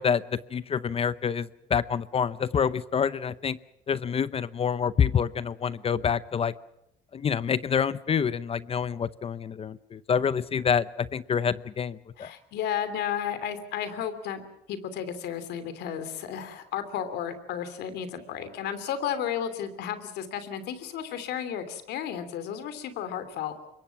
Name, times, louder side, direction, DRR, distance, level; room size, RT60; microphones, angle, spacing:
voice 1, 0.0-3.6 3.9-6.5 7.1-12.3, left 7 dB, 35° left, 17 dB, 0.7 m, -27 dB
voice 2, 12.2-14.4 14.7-23.5, left 9 dB, 80° left, 11 dB, 3.1 m, -33 dB
25.5 x 22.5 x 6.0 m, 0.86 s
cardioid pair, 110°, 17 cm